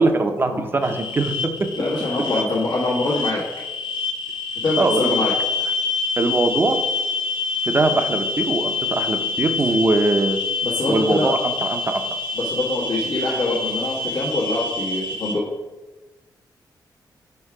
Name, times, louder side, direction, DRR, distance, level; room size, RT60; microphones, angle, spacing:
voice 1, 0.0-1.3 4.8-5.2 6.2-6.8 7.7-10.4 10.9-12.0, right 3 dB, 30° right, 6 dB, 0.6 m, -21 dB
sound 1, 0.8-15.3, left 4 dB, 90° left, 0.7 m, -26 dB
voice 2, 1.7-3.4 4.6-5.3 10.6-11.3 12.3-15.4, left 2 dB, 70° left, -7 dB, 1.3 m, -24 dB
4.5 x 4.5 x 4.8 m, 1.1 s
wide cardioid pair, 115°, 8 cm